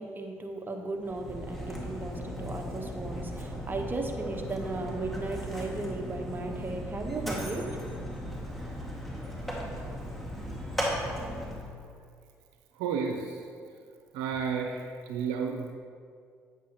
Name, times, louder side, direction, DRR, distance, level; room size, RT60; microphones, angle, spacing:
voice 1, 0.0-7.7, right 2 dB, 30° right, 2 dB, 1.2 m, -36 dB
Mechanisms, 1.0-11.7, equal, ahead, 2.1 m, -37 dB
voice 2, 12.8-13.6 14.1-15.7, right 6 dB, 85° right, 3 dB, 0.6 m, -32 dB
8.6 x 8.1 x 3.0 m, 2.2 s
hypercardioid pair, 55°, 7 cm